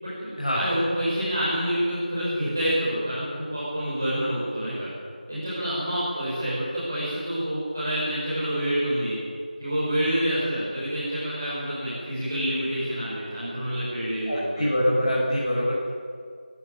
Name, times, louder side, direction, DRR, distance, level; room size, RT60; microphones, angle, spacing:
voice 1, 0.0-4.9 5.3-9.2 9.6-14.7, equal, 20° right, -9 dB, 5.6 m, -27 dB
voice 2, 14.3-15.9, equal, 35° left, -6 dB, 5.9 m, -24 dB
23.0 x 15.5 x 9.7 m, 2.1 s
figure-of-eight pair, 180°, 5 cm